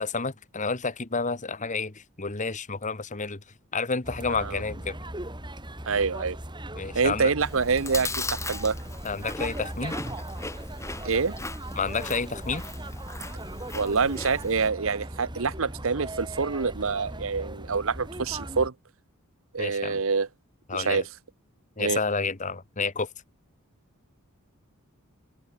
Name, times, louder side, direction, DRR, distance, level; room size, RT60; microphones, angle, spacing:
voice 1, 0.0-3.4 3.7-5.0 6.8-7.3 9.0-10.0 11.8-12.6 19.6-20.0 20.7-21.0 21.8-23.1, left 4 dB, 35° left, 1.5 m, -30 dB
sound 1, 4.0-18.7, right 1 dB, 20° right, 6.4 m, -39 dB
voice 2, 4.3-4.6 5.9-6.4 6.9-8.8 11.0-11.3 13.7-18.7 19.5-20.3 20.7-21.0 21.8-22.0, right 5 dB, 65° right, 0.9 m, -26 dB
Chewing mastication, 7.4-14.7, left 2 dB, 15° left, 4.5 m, -38 dB
open air
head